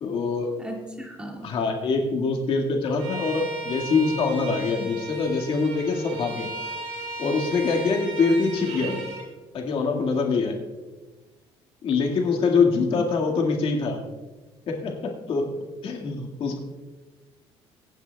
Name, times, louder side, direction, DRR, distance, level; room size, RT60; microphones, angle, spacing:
voice 1, 0.0-0.5 1.4-6.5 7.2-9.0 9.5-10.6 11.8-14.0 14.7-15.6 15.8-16.6, left 4 dB, 55° left, 1 dB, 1.8 m, -24 dB
voice 2, 0.6-1.5 12.7-12.9, right 1 dB, 10° right, 0 dB, 2.0 m, -37 dB
Bowed string instrument, 3.0-9.3, right 2 dB, 85° right, 3.6 m, -35 dB
24.5 x 9.2 x 2.3 m, 1.3 s
cardioid pair, 130°, 11 cm